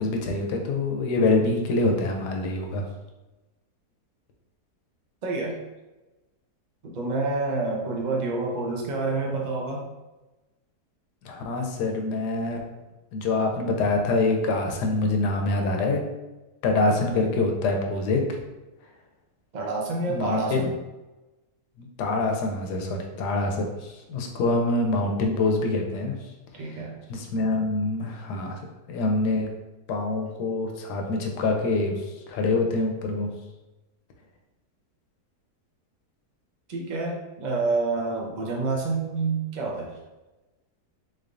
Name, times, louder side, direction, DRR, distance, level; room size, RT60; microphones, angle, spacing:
voice 1, 0.0-2.8 11.2-12.6 13.1-16.0 16.6-18.2 20.1-20.7 21.8-26.2 27.1-28.6 28.9-29.5 29.9-32.0 32.3-33.3, left 2 dB, 85° left, 3 dB, 1.2 m, -25 dB
voice 2, 5.2-5.6 6.8-9.9 19.5-20.7 26.5-27.0 36.7-40.0, right 3 dB, 70° right, -1 dB, 0.4 m, -28 dB
3.9 x 3.3 x 2.5 m, 1.1 s
omnidirectional pair, 1.7 m